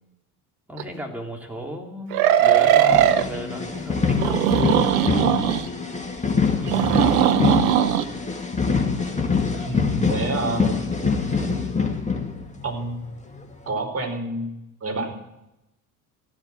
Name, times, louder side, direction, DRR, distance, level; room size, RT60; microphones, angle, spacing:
voice 1, 0.7-4.6 6.5-7.1, equal, 5° right, -1 dB, 3.5 m, -35 dB
sound 1, 0.8-0.9 2.1-3.3 4.2-5.7 6.7-8.0, right 10 dB, 65° right, 1.0 m, -19 dB
sound 2, 2.9-12.8 13.3-13.5, left 5 dB, 15° left, 2.3 m, -24 dB
voice 2, 6.6-7.0 9.6-10.8 12.6-13.0 13.7-14.5 14.8-15.1, right 2 dB, 30° right, 2 dB, 4.9 m, -28 dB
15.0 x 12.0 x 6.2 m, 0.90 s
figure-of-eight pair, 60°, 46 cm